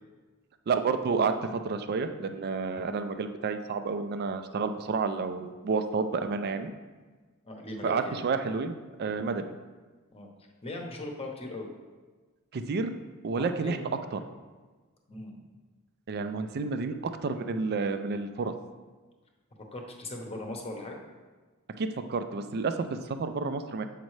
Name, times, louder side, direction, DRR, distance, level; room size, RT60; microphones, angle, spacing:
voice 1, 0.7-6.7 7.8-9.5 12.5-12.9 13.2-14.2 16.1-18.5 21.8-23.9, right 4 dB, 50° right, 9 dB, 0.4 m, -30 dB
voice 2, 7.4-8.2 10.1-10.3 10.6-11.7 13.3-13.9 15.1-15.4 19.7-21.0, left 2 dB, 25° left, 2 dB, 0.8 m, -39 dB
7.4 x 5.2 x 3.1 m, 1.3 s
head